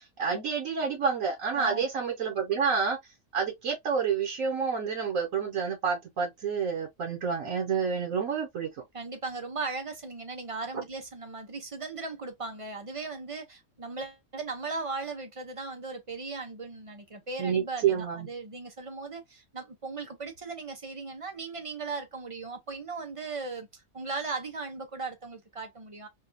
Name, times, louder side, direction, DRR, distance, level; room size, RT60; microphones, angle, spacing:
voice 1, 0.0-3.0 3.3-8.8 17.4-18.3, right 6 dB, 70° right, 1.3 m, -29 dB
voice 2, 1.5-1.8 8.9-26.1, right 3 dB, 40° right, 0.5 m, -37 dB
4.1 x 2.3 x 2.5 m
omnidirectional pair, 1.5 m